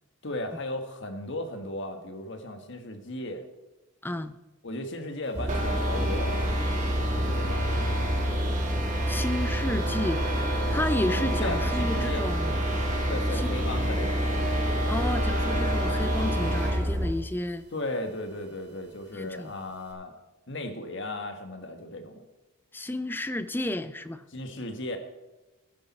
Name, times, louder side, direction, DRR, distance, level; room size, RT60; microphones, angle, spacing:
voice 1, 0.2-3.4 4.6-6.5 7.0-7.7 11.2-12.2 13.1-14.2 17.7-20.1 20.5-22.2 24.3-25.0, left 1 dB, 55° left, 6 dB, 1.5 m, -36 dB
voice 2, 4.0-4.3 9.1-10.2 10.7-12.6 13.3-13.6 14.9-17.6 19.1-19.5 22.7-24.2, left 1 dB, 10° left, 12 dB, 0.5 m, -32 dB
sound 1, 5.3-17.1, equal, 15° right, 1.4 m, -28 dB
sound 2, 5.5-16.9, right 1 dB, 35° right, 2.5 m, -32 dB
15.0 x 10.5 x 4.3 m, 1.1 s
head